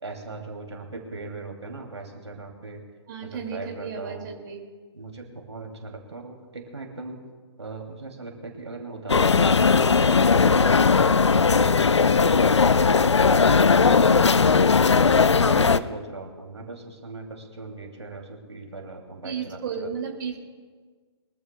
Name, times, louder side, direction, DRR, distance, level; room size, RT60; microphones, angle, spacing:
voice 1, 0.0-2.8 3.2-4.3 4.9-7.2 7.6-9.9 14.9-20.0, right 3 dB, 80° right, 2 dB, 2.5 m, -39 dB
voice 2, 3.1-4.6 19.2-20.4, right 6 dB, 45° right, 1 dB, 2.3 m, -33 dB
sound 1, 9.1-15.8, left 5 dB, 80° left, 0.6 m, -18 dB
23.5 x 14.5 x 2.2 m, 1.5 s
figure-of-eight pair, 130°, 15 cm